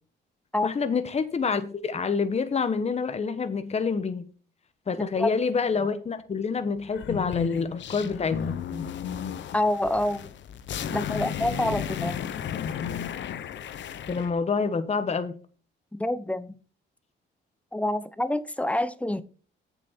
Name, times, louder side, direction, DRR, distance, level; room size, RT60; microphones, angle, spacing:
voice 1, 0.6-4.3 4.9-8.9 14.1-15.4, left 5 dB, 35° left, 1.1 m, -27 dB
sound 1, 6.9-14.3, left 8 dB, 65° left, 1.0 m, -34 dB
voice 2, 9.5-10.3 10.9-12.3 15.9-16.5 17.7-19.2, left 1 dB, 5° left, 0.8 m, -27 dB
8.2 x 7.1 x 4.4 m
cardioid pair, 90°, 20 cm